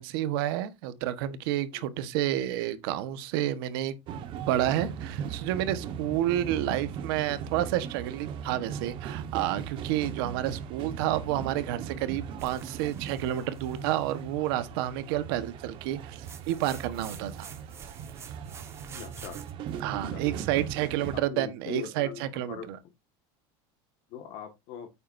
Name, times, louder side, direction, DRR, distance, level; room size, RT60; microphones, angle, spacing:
voice 1, 0.0-4.0 4.5-17.5 19.8-22.8, right 12 dB, 75° right, 1.4 m, -30 dB
sound 1, 4.1-21.2, right 8 dB, 45° right, 1.4 m, -38 dB
sound 2, 12.4-14.2 16.2-19.5, right 6 dB, 20° right, 1.3 m, -48 dB
voice 2, 18.9-19.4 20.1-20.2 21.1-22.2 22.5-22.7 24.1-24.9, left 8 dB, 55° left, 1.8 m, -40 dB
9.5 x 8.6 x 2.7 m
cardioid pair, 165°, 12 cm